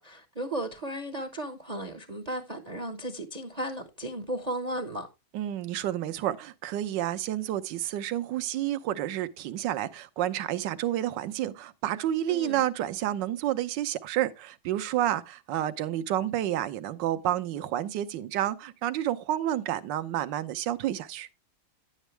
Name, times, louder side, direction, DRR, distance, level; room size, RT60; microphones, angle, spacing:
voice 1, 0.0-5.1 12.3-12.7, right 1 dB, 30° right, 0.7 m, -35 dB
voice 2, 5.3-21.3, right 12 dB, 70° right, 1.3 m, -30 dB
10.5 x 8.2 x 3.2 m
omnidirectional pair, 2.1 m